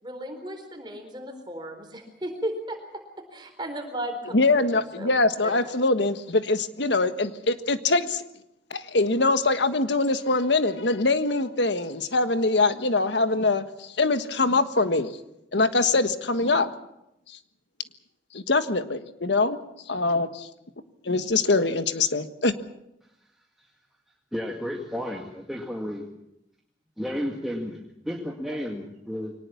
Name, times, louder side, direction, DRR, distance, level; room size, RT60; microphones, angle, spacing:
voice 1, 0.0-3.0 3.3-4.7 5.0-5.1 5.4-5.5, right 1 dB, 25° right, 5 dB, 4.0 m, -35 dB
voice 2, 4.3-8.2 8.7-15.2 15.5-16.7 17.3-17.4 18.3-20.5 21.0-22.5, left 3 dB, 80° left, 10 dB, 1.5 m, -23 dB
voice 3, 24.3-26.1 27.0-29.3, equal, ahead, -1 dB, 2.0 m, -32 dB
24.0 x 19.0 x 7.2 m, 0.84 s
head